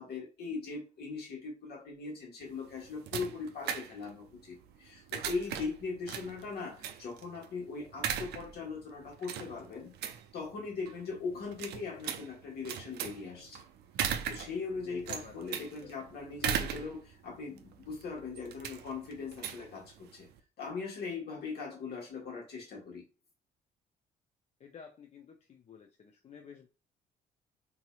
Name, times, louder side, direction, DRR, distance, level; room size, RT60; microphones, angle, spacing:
voice 1, 0.0-9.9 10.3-13.6 14.2-20.3 20.6-23.0, left 4 dB, 50° left, -1 dB, 1.5 m, -40 dB
sound 1, 2.4-20.4, right 9 dB, 55° right, 0.4 m, -40 dB
voice 2, 14.9-16.1 24.6-26.7, left 7 dB, 35° left, 3 dB, 0.5 m, -53 dB
4.0 x 2.7 x 2.3 m, 0.33 s
figure-of-eight pair, 45°, 20 cm